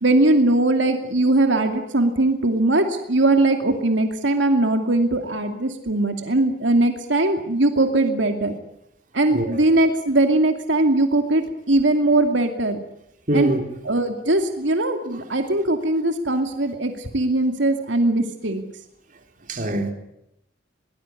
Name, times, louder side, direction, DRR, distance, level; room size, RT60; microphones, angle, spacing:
voice 1, 0.0-8.5 9.1-12.8 13.3-13.5 13.8-18.6, right 2 dB, 80° right, 2.5 m, -20 dB
voice 2, 13.3-13.6 19.5-19.9, right 1 dB, 45° right, 3.6 m, -23 dB
23.0 x 19.0 x 9.8 m
head